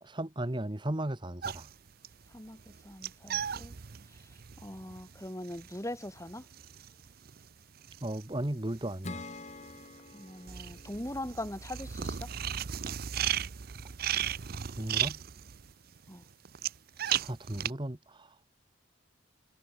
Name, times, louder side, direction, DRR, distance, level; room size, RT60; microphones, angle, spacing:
voice 1, 0.0-1.7 8.0-9.2 14.8-15.2 17.0-18.3, right 1 dB, 25° right, 1.2 m, -36 dB
sound 1, 1.4-8.9 9.2-17.7, right 10 dB, 50° right, 0.6 m, -36 dB
voice 2, 2.3-3.8 4.1-6.4 10.1-12.3 16.1-16.2, left 1 dB, 15° left, 1.7 m, -41 dB
Acoustic guitar / Strum, 9.0-12.5, left 2 dB, 35° left, 1.5 m, -47 dB
head